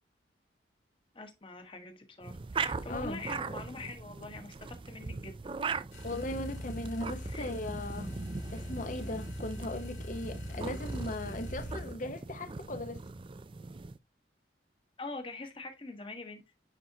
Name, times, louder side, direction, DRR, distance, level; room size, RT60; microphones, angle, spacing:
voice 1, 1.1-5.5 7.3-7.5 15.0-16.4, left 3 dB, 30° left, 1.3 m, -44 dB
sound 1, 2.2-14.0, right 4 dB, 30° right, 0.4 m, -40 dB
voice 2, 2.9-3.2 6.0-8.1 8.5-13.0, left 1 dB, 45° left, 0.9 m, -38 dB
sound 2, 5.9-12.0, left 1 dB, 65° left, 2.9 m, -42 dB
9.7 x 4.2 x 2.8 m
head